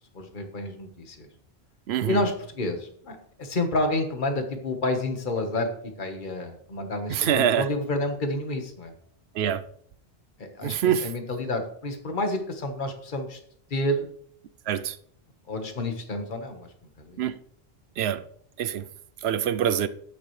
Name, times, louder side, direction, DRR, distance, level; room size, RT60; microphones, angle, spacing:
voice 1, 0.1-1.3 2.1-5.7 6.0-8.9 10.4-10.7 11.0-13.4 13.7-14.1 15.5-16.7 17.0-17.2, left 1 dB, 50° left, 1.6 m, -29 dB
voice 2, 1.9-2.2 7.1-7.7 9.4-9.6 10.6-11.1 14.7-15.0 17.2-17.4 18.0-18.2 18.6-18.8 19.2-19.9, right 9 dB, 90° right, 0.9 m, -24 dB
12.5 x 9.6 x 3.3 m
omnidirectional pair, 1.1 m